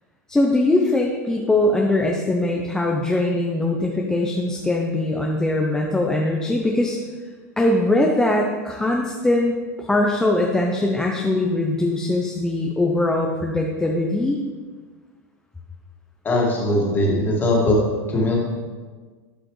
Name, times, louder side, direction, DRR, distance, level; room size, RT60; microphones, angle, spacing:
voice 1, 0.3-7.0 7.6-9.5 9.8-14.4, left 2 dB, 5° left, -1 dB, 0.6 m, -21 dB
voice 2, 16.2-17.8 18.1-18.4, left 1 dB, 20° left, -3 dB, 2.1 m, -20 dB
11.5 x 4.9 x 3.2 m, 1.4 s
supercardioid pair, 125°, 9 cm